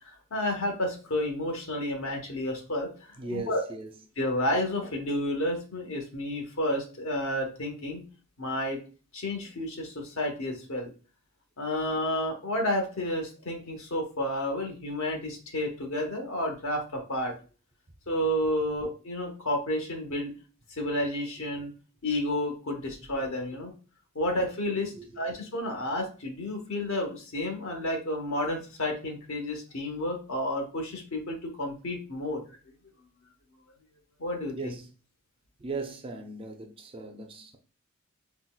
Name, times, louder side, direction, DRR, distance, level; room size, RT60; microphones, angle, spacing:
voice 1, 0.0-3.6 4.2-8.0 8.4-8.8 9.1-10.9 11.6-17.3 18.1-20.3 20.7-21.7 22.0-23.7 24.1-32.4 34.2-34.7, left 1 dB, 65° left, 0.9 m, -31 dB
voice 2, 3.2-3.9 24.9-25.2 34.6-34.9 35.6-37.6, right 3 dB, 25° right, 0.3 m, -38 dB
3.8 x 2.1 x 2.2 m
head